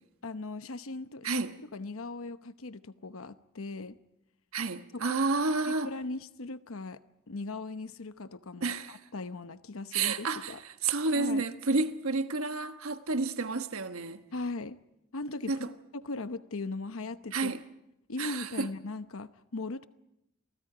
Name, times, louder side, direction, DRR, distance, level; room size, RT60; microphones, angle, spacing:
voice 1, 0.2-1.4 1.7-4.0 4.9-5.2 5.7-7.0 7.3-10.6 11.1-11.5 14.3-14.8 15.1-15.6 15.9-17.6 18.1-19.9, left 3 dB, 75° left, 1.0 m, -39 dB
voice 2, 4.5-5.9 8.6-9.0 9.9-10.5 10.8-14.2 15.5-15.7 17.3-17.6 18.2-18.7, right 3 dB, 85° right, 1.3 m, -30 dB
29.5 x 23.5 x 5.0 m
head